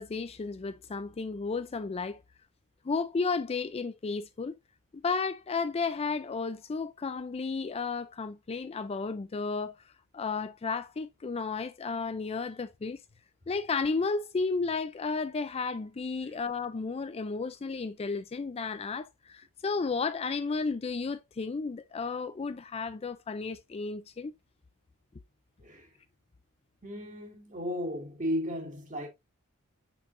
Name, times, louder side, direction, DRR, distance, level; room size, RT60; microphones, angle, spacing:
voice 1, 0.0-2.2 2.8-4.5 4.9-9.7 10.1-13.0 13.5-24.3, left 4 dB, 25° left, 0.4 m, -33 dB
voice 2, 26.8-29.1, equal, 35° right, 2.2 m, -35 dB
6.5 x 6.1 x 2.5 m
head